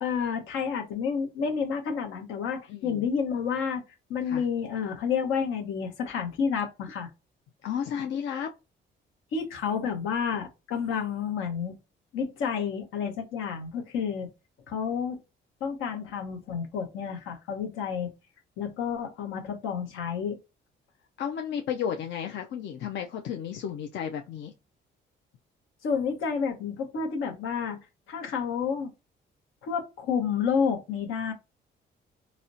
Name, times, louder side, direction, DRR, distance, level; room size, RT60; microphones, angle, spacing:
voice 1, 0.0-3.8 4.1-7.1 9.3-11.7 12.1-14.3 14.7-15.2 15.6-18.1 18.6-20.4 25.8-27.8 28.1-28.9 29.6-31.3, left 6 dB, 90° left, 0.9 m, -30 dB
voice 2, 2.7-3.1 4.2-4.4 7.6-8.5 9.6-9.9 21.2-24.5, left 8 dB, 65° left, 0.5 m, -33 dB
4.0 x 2.1 x 2.6 m
cardioid pair, 90°, 20 cm